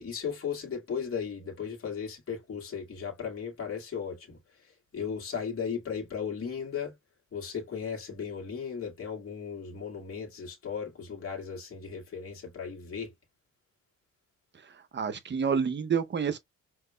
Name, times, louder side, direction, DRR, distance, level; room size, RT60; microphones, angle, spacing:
voice 1, 0.0-4.4 4.9-6.9 7.3-13.1, left 6 dB, 45° left, 1.8 m, -36 dB
voice 2, 14.9-16.4, right 6 dB, 35° right, 0.7 m, -28 dB
5.1 x 3.0 x 2.2 m
cardioid pair, 90°, 30 cm